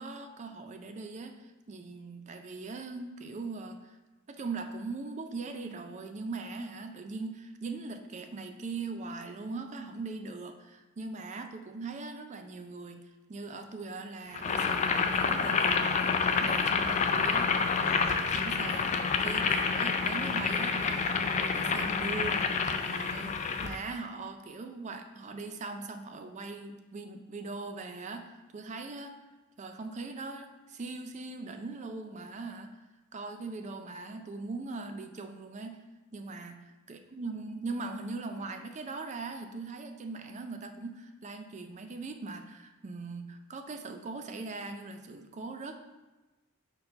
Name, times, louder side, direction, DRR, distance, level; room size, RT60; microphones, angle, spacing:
voice 1, 0.0-4.0 4.3-29.2 29.6-32.8 33.1-35.8 36.1-45.8, right 3 dB, 35° right, 7 dB, 0.4 m, -40 dB
Boiling, 14.3-23.8, left 5 dB, 35° left, 0.4 m, -28 dB
4.5 x 3.9 x 5.5 m, 1.1 s
head